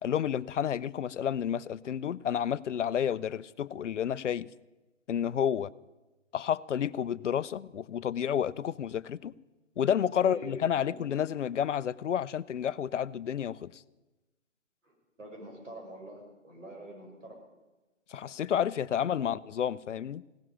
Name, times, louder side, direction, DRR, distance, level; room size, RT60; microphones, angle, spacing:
voice 1, 0.0-4.5 5.1-5.7 6.3-9.3 9.8-13.8 18.1-20.2, left 9 dB, 65° left, 0.6 m, -30 dB
voice 2, 10.1-11.0 14.8-17.4 19.1-19.3, right 1 dB, 75° right, 6.2 m, -46 dB
17.0 x 7.7 x 10.0 m
hypercardioid pair, 145°, 38 cm